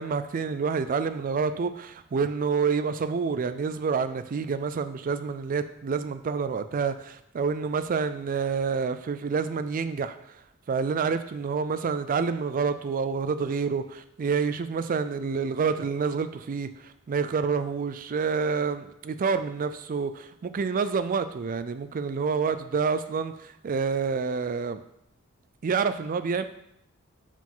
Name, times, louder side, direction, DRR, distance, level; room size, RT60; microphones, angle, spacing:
voice 1, 0.0-10.2 10.7-24.8 25.6-26.4, right 5 dB, 40° right, 11 dB, 0.4 m, -28 dB
5.6 x 4.9 x 3.8 m, 0.77 s
head